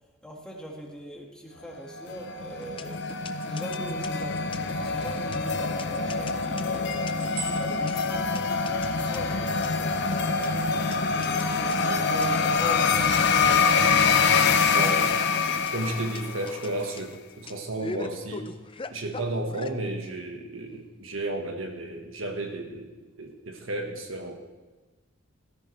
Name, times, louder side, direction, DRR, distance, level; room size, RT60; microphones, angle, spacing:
voice 1, 0.2-7.1 7.6-9.8 10.4-14.0, right 1 dB, 5° left, -1 dB, 2.0 m, -41 dB
sound 1, 2.0-16.6, left 5 dB, 60° left, 0.8 m, -25 dB
sound 2, 2.6-19.7, left 3 dB, 25° left, 0.5 m, -41 dB
sound 3, 7.1-10.9 11.4-12.2 12.5-18.0 18.3-18.4 18.7-19.9, right 3 dB, 55° right, 4.4 m, -46 dB
voice 2, 14.6-15.2 15.5-18.5 18.9-22.9 23.2-24.4, right 2 dB, 75° right, 3 dB, 1.6 m, -33 dB
15.5 x 13.5 x 3.4 m, 1.3 s
head